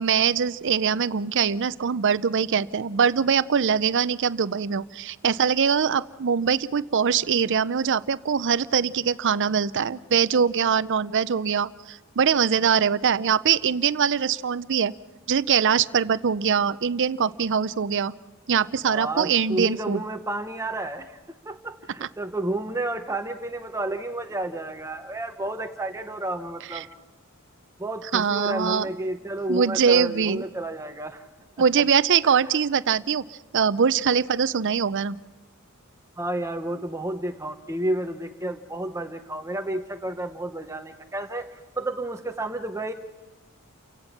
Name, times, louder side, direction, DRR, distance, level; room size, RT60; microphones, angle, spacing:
voice 1, 0.0-14.9 15.3-18.1 18.5-20.0 22.0-22.1 26.7-26.9 28.1-28.9 29.5-30.4 31.6-35.2, right 7 dB, 55° right, 17 dB, 0.6 m, -23 dB
voice 2, 18.8-21.2 21.4-26.9 27.8-31.2 31.6-31.7 36.2-42.9, right 1 dB, 15° right, 7 dB, 0.9 m, -31 dB
30.0 x 16.5 x 5.9 m, 1.3 s
head